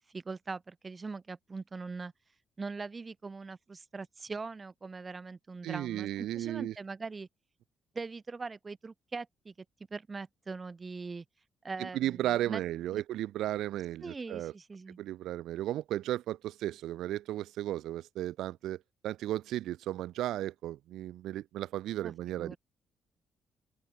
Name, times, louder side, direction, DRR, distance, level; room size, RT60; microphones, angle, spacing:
voice 1, 0.0-2.1 2.6-7.3 7.9-9.5 9.9-11.2 11.6-12.6 12.9-13.0 14.0-15.0 22.0-22.6, right 4 dB, 30° right, 5.1 m, -41 dB
voice 2, 5.6-6.7 11.8-14.5 15.0-22.5, right 13 dB, 85° right, 1.1 m, -35 dB
open air
cardioid pair, 90°, 0 cm